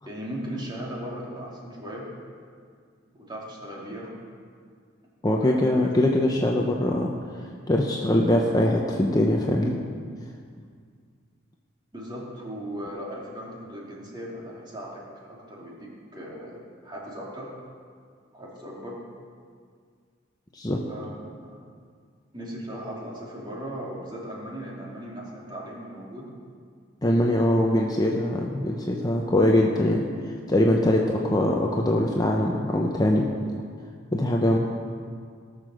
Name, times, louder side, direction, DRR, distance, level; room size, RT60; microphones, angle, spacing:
voice 1, 0.1-2.1 3.2-4.1 5.2-5.9 11.9-15.0 15.3-16.6 16.8-17.5 18.3-19.0 20.9-21.6 22.3-26.3 31.0-31.1, equal, 20° right, -4 dB, 2.7 m, -37 dB
voice 2, 5.2-7.1 7.7-9.8 20.5-20.8 27.0-30.0 30.5-33.2 34.1-34.6, left 1 dB, 20° left, 0 dB, 0.7 m, -22 dB
18.0 x 6.8 x 6.3 m, 2.1 s
head